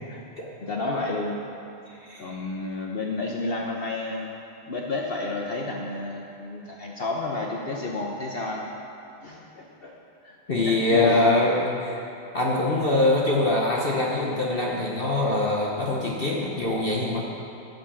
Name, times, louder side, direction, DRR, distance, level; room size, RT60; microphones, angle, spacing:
voice 1, 0.6-1.4 2.2-4.3 4.7-8.6 9.2-9.9 10.2-10.3 10.6-11.4, left 2 dB, 85° left, -1 dB, 0.5 m, -31 dB
voice 2, 1.9-2.4 10.5-12.0 12.3-17.2, left 2 dB, 45° left, -2 dB, 0.7 m, -23 dB
13.0 x 5.4 x 7.0 m, 2.9 s
omnidirectional pair, 2.3 m